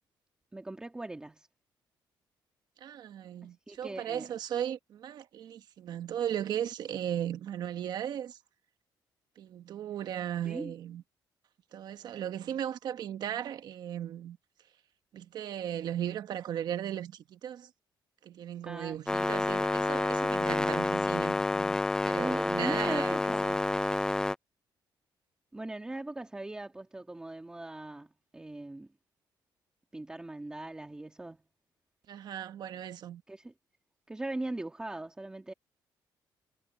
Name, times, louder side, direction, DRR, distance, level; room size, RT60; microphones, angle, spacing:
voice 1, 0.5-1.5 3.7-4.3 10.5-10.7 18.6-19.4 22.2-23.6 25.5-28.9 29.9-31.4 33.3-33.5 34.1-35.5, right 2 dB, 10° right, 1.7 m, -40 dB
voice 2, 2.8-8.4 9.4-11.0 11.7-14.4 15.1-17.7 18.2-21.8 22.0-23.2 23.4-23.5 32.1-33.2, right 10 dB, 55° right, 1.3 m, -36 dB
sound 1, 19.1-24.4, left 2 dB, 10° left, 0.4 m, -29 dB
cardioid pair, 160°, 8 cm